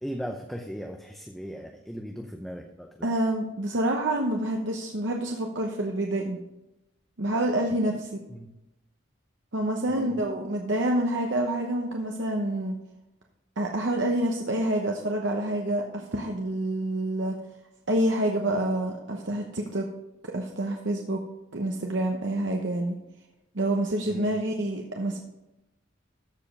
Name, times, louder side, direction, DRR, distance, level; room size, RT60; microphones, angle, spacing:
voice 1, 0.0-3.1 8.3-8.5 9.9-10.1 24.0-24.3, equal, ahead, 2 dB, 0.6 m, -37 dB
voice 2, 3.0-6.4 7.2-8.1 9.5-12.7 13.6-17.3 17.9-19.8 20.3-21.2 21.5-23.0 23.5-25.2, right 1 dB, 70° right, 1 dB, 1.0 m, -27 dB
13.5 x 5.1 x 5.3 m, 0.93 s
head